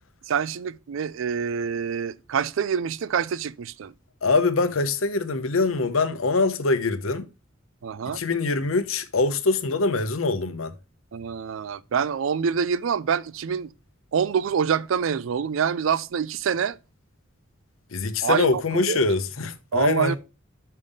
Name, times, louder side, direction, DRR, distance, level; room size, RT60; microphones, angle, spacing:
voice 1, 0.3-3.9 7.8-8.2 11.1-13.7 14.1-16.8 18.2-19.0 19.7-20.1, right 7 dB, 70° right, 0.4 m, -26 dB
voice 2, 4.2-7.3 8.1-10.7 17.9-20.2, left 3 dB, 80° left, 0.8 m, -24 dB
5.5 x 5.4 x 5.0 m
head